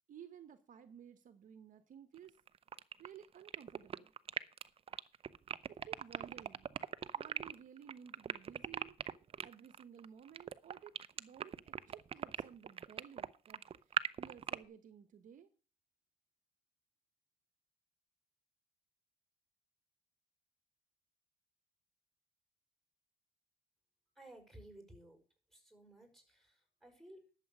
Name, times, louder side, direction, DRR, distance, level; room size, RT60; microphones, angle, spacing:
voice 1, 0.1-2.3 3.0-4.1 5.7-6.7 7.1-9.0 9.4-15.5, right 8 dB, 50° right, 11 dB, 1.1 m, -56 dB
sound 1, 2.2-14.6, right 8 dB, 35° right, 0.6 m, -40 dB
voice 2, 24.2-25.2 25.5-27.3, right 1 dB, ahead, 4 dB, 5.3 m, -57 dB
11.5 x 7.6 x 6.2 m, 0.37 s
cardioid pair, 110°, 17 cm